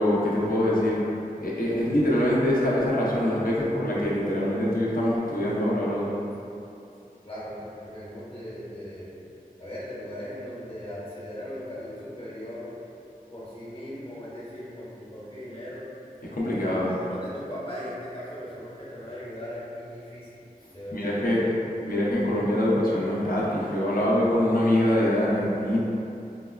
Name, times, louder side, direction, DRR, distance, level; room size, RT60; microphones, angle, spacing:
voice 1, 0.0-6.2 16.2-17.0 20.9-25.8, left 1 dB, 70° left, -6 dB, 0.7 m, -24 dB
voice 2, 7.2-9.1 9.6-12.7 13.3-15.8 16.4-20.3 20.7-21.4, equal, 35° left, -9 dB, 1.1 m, -38 dB
4.7 x 2.1 x 2.3 m, 2.8 s
wide cardioid pair, 40°, 15 cm